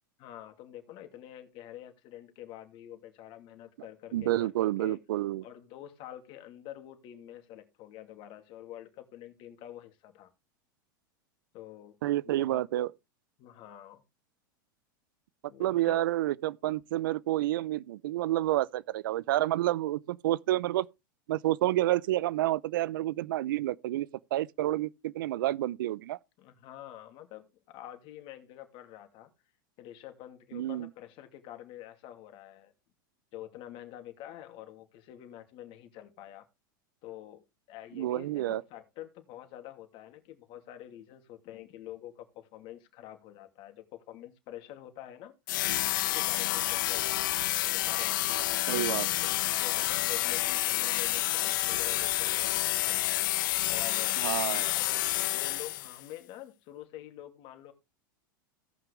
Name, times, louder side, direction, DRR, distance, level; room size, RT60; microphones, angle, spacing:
voice 1, 0.2-5.0 5.4-10.3 11.5-12.0 12.2-12.6 13.4-14.0 15.4-16.1 26.4-29.3 29.8-32.7 33.3-36.4 37.0-45.3 46.1-47.1 47.7-53.1 53.7-57.7, left 12 dB, 50° left, 2.6 m, -47 dB
voice 2, 4.1-5.4 12.0-12.9 15.6-20.9 21.3-26.2 30.5-30.9 37.9-38.6 48.7-49.1 54.2-54.6, right 15 dB, 75° right, 0.6 m, -29 dB
sound 1, 45.5-56.0, left 17 dB, 70° left, 0.5 m, -29 dB
17.5 x 6.0 x 3.4 m
hypercardioid pair, 110°, 11 cm